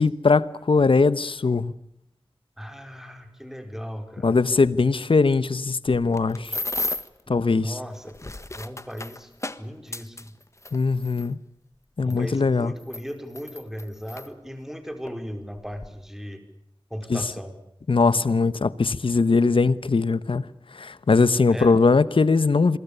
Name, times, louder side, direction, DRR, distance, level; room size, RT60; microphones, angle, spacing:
voice 1, 0.0-1.7 4.2-6.6 7.3-7.7 10.7-11.4 12.0-12.7 17.1-17.2 17.9-20.5 20.7-22.8, left 4 dB, 85° left, 1.1 m, -20 dB
voice 2, 2.6-4.4 7.3-9.3 9.6-10.3 12.0-16.4 16.9-17.6 21.5-21.8, equal, 5° right, 4.9 m, -37 dB
sound 1, 5.9-7.2 8.0-11.3 12.1-12.2 12.8-14.3 15.1-15.2 15.5-15.9, left 2 dB, 35° left, 1.5 m, -34 dB
27.0 x 23.5 x 6.9 m
wide cardioid pair, 65°, 9 cm